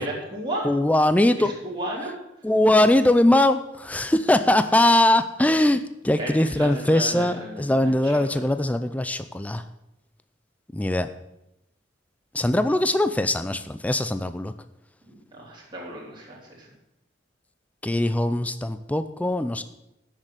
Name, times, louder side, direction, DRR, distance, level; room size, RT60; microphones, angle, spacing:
voice 1, 0.0-0.7 1.4-2.1 6.2-8.4 15.0-16.7, right 1 dB, 25° right, -4 dB, 3.2 m, -34 dB
voice 2, 0.6-1.5 2.4-9.6 10.7-11.1 12.3-14.5 17.8-19.6, left 1 dB, 10° left, 10 dB, 0.4 m, -21 dB
9.8 x 6.6 x 7.5 m, 0.87 s
head